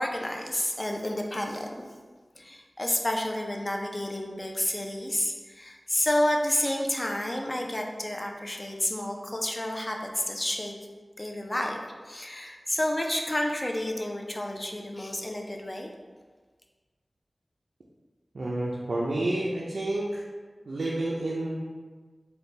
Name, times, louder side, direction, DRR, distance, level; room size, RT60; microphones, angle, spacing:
voice 1, 0.0-1.9 2.3-10.8 11.2-11.8 12.0-15.9, left 1 dB, 30° left, 1 dB, 0.4 m, -30 dB
voice 2, 18.3-20.2 20.7-21.6, right 1 dB, 85° right, -5 dB, 0.4 m, -29 dB
4.0 x 2.2 x 3.2 m, 1.4 s
wide cardioid pair, 60°, 0 cm